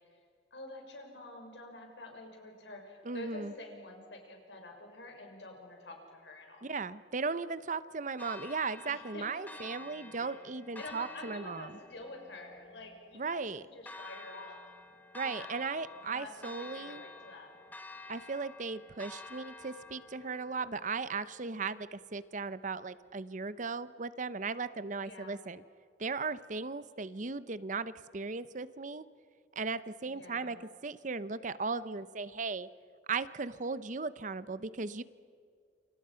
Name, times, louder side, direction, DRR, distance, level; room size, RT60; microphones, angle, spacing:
voice 1, 0.5-6.7 8.9-9.3 10.2-10.3 10.8-14.6 15.2-15.5 16.1-17.5 25.0-25.4 30.0-30.6, left 2 dB, 80° left, 3 dB, 6.0 m, -48 dB
voice 2, 3.0-3.5 6.6-11.8 13.1-13.7 15.1-17.0 18.1-25.6 26.0-29.0 29.6-32.7 33.1-35.0, right 4 dB, 45° right, 15 dB, 0.8 m, -37 dB
Church bell, 8.2-22.2, left 3 dB, 10° left, 1.5 m, -50 dB
29.0 x 26.5 x 5.8 m, 2.2 s
head